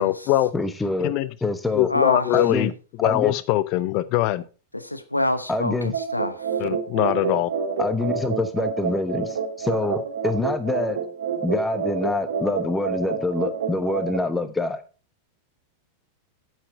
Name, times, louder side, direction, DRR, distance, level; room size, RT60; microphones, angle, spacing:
voice 1, 0.0-0.5 1.0-1.3 1.7-2.7 3.0-4.4 6.6-7.5, left 15 dB, 45° left, 0.7 m, -22 dB
voice 2, 0.5-1.1 1.4-1.9 2.3-2.7 3.0-3.3 5.5-6.0 7.8-11.0 11.4-14.8, left 2 dB, 10° left, 0.9 m, -26 dB
voice 3, 1.9-2.5 4.7-6.5, left 1 dB, 85° left, 1.0 m, -26 dB
sound 1, 5.9-14.2, right 6 dB, 60° right, 2.0 m, -28 dB
8.8 x 7.6 x 4.3 m
figure-of-eight pair, 90°, 0 cm